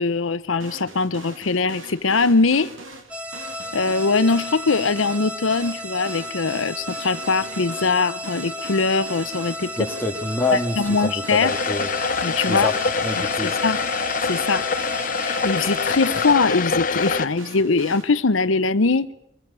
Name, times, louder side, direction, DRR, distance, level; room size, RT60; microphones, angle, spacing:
voice 1, 0.0-2.7 3.7-9.7 10.5-11.5 12.2-12.7 13.2-13.8 14.2-14.7 15.2-19.1, left 4 dB, 80° left, 14 dB, 0.8 m, -21 dB
sound 1, 0.6-18.0, right 2 dB, 80° right, 3.1 m, -42 dB
sound 2, 3.1-16.3, equal, 5° right, 1.6 m, -34 dB
voice 2, 9.8-11.9 12.5-13.5, left 2 dB, 10° left, 3 dB, 1.9 m, -26 dB
sound 3, 11.4-17.3, left 4 dB, 45° left, 0.9 m, -25 dB
23.5 x 23.0 x 6.9 m, 0.77 s
head